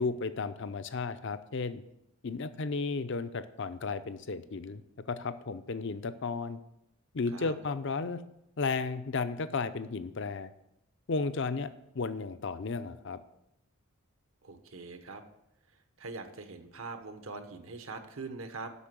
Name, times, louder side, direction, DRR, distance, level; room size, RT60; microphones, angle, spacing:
voice 1, 0.0-1.8 2.2-4.8 5.1-6.6 7.1-8.2 8.6-10.5 11.1-13.2, left 4 dB, 60° left, 12 dB, 0.6 m, -34 dB
voice 2, 14.4-15.2 16.0-18.7, right 3 dB, 75° right, 8 dB, 1.1 m, -42 dB
8.2 x 6.0 x 7.5 m, 0.83 s
head